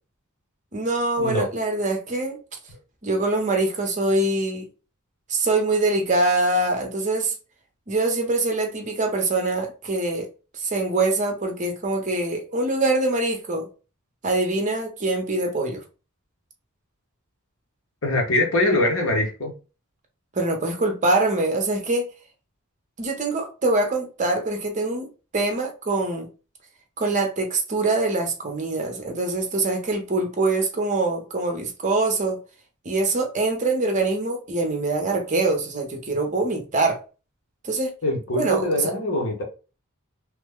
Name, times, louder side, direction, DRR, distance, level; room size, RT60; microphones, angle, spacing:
voice 1, 0.7-2.4 3.0-4.7 5.3-7.3 7.9-10.3 10.5-13.7 14.2-15.8 20.3-22.1 23.0-25.1 25.3-26.3 27.0-32.4 32.8-37.0 37.6-37.9 38.3-38.7, right 2 dB, 35° right, 0.7 m, -24 dB
voice 2, 18.0-19.5 38.0-39.4, left 1 dB, 65° left, 1.1 m, -23 dB
3.0 x 2.2 x 3.5 m
head